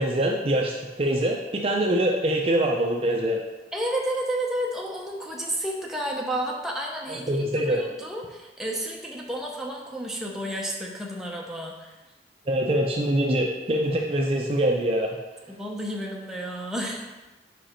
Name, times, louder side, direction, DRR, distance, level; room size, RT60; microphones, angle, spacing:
voice 1, 0.0-3.4 7.1-7.8 12.5-15.2, right 1 dB, 35° right, 0 dB, 0.5 m, -24 dB
voice 2, 3.7-11.9 15.5-17.1, right 1 dB, 5° right, -2 dB, 0.7 m, -31 dB
5.1 x 4.9 x 4.4 m, 1.2 s
head